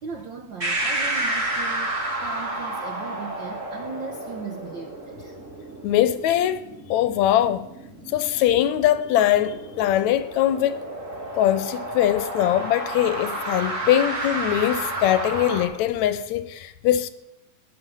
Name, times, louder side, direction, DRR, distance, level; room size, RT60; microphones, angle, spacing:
voice 1, 0.0-5.4, right 5 dB, 75° right, 1.1 m, -38 dB
sound 1, 0.6-15.6, right 1 dB, 25° right, 2.6 m, -31 dB
voice 2, 5.8-6.6 6.9-7.7 8.1-10.8 11.3-17.1, left 12 dB, 75° left, 1.9 m, -22 dB
17.5 x 5.9 x 9.8 m
omnidirectional pair, 3.4 m